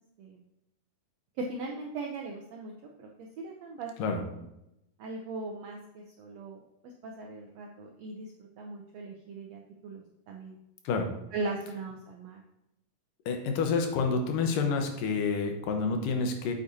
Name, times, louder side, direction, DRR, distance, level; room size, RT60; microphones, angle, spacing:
voice 1, 1.4-2.7 3.0-4.4 5.0-8.3 8.6-10.6 11.3-12.4, right 3 dB, 80° right, 0 dB, 1.5 m, -39 dB
voice 2, 13.3-16.5, left 4 dB, 80° left, 4 dB, 2.6 m, -28 dB
8.3 x 8.1 x 2.7 m, 0.87 s
omnidirectional pair, 3.8 m